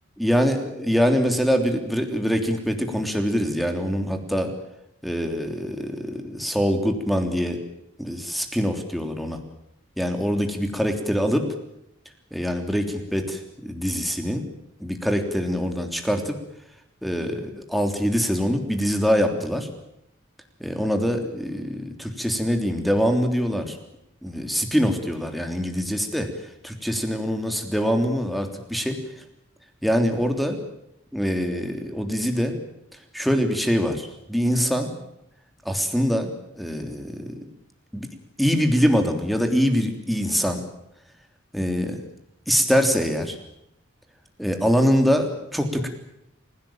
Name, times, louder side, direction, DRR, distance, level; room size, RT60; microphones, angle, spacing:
voice 1, 0.2-4.5 5.0-7.6 8.0-9.4 10.0-11.4 12.3-14.4 14.8-16.4 17.0-19.7 20.6-23.8 24.2-26.3 26.6-29.0 29.8-30.6 31.1-32.6 33.1-34.9 35.6-37.5 37.9-38.1 38.4-40.6 41.5-42.1 42.5-43.4 44.4-45.9, equal, ahead, 5 dB, 3.3 m, -24 dB
28.5 x 16.5 x 9.1 m, 0.81 s
head